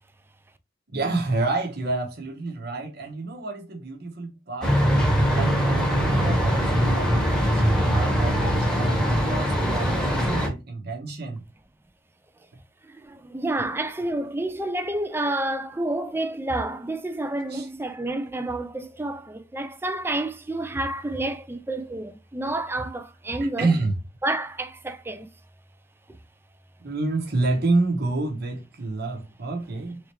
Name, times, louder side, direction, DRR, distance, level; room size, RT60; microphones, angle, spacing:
voice 1, 0.9-4.8 5.3-11.4 17.5-17.7 23.4-23.9 26.8-30.0, right 3 dB, 55° right, 1.0 m, -29 dB
sound 1, 4.6-10.5, equal, 5° left, 1.1 m, -22 dB
voice 2, 12.8-23.7 24.2-25.3, right 1 dB, 10° right, 0.4 m, -29 dB
3.5 x 3.3 x 3.0 m
head